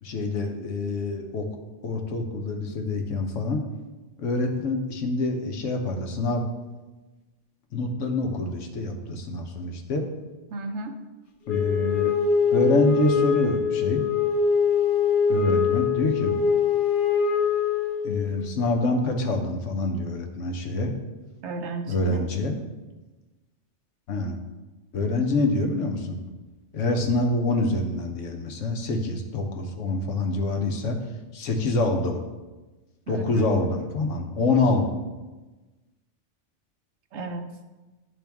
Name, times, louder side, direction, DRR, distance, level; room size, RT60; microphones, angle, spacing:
voice 1, 0.0-1.5 1.8-3.6 4.2-6.5 7.7-10.1 11.5-12.1 12.5-14.0 15.3-16.3 18.0-20.9 21.9-22.6 24.1-24.4 24.9-26.2 26.7-31.0 31.3-32.2 33.1-34.9, left 2 dB, 80° left, 4 dB, 1.2 m, -26 dB
voice 2, 10.5-11.0 21.4-22.2 33.1-33.5 37.1-37.4, right 3 dB, 70° right, 6 dB, 1.0 m, -33 dB
Wind instrument woodwind instrument, 11.5-18.3, left 6 dB, 50° left, 0.9 m, -23 dB
10.0 x 3.8 x 3.5 m, 1.2 s
omnidirectional pair, 1.2 m